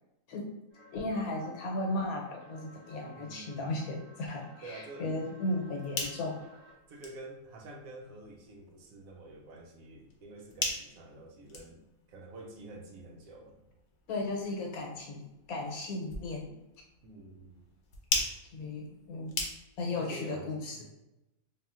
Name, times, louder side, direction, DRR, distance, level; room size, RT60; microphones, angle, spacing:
sound 1, 0.7-6.7, left 1 dB, 50° right, 1.5 m, -56 dB
voice 1, 0.9-6.5 14.1-16.5 18.5-19.4 19.8-20.8, left 2 dB, 85° left, 0 dB, 1.2 m, -35 dB
voice 2, 3.1-3.7 4.6-5.4 6.9-11.8 12.1-13.7 17.0-17.6 19.9-20.8, right 2 dB, 80° right, 1 dB, 1.0 m, -48 dB
sound 2, 5.6-20.0, left 3 dB, 60° left, 0.8 m, -41 dB
3.4 x 2.4 x 2.4 m, 0.93 s
omnidirectional pair, 1.5 m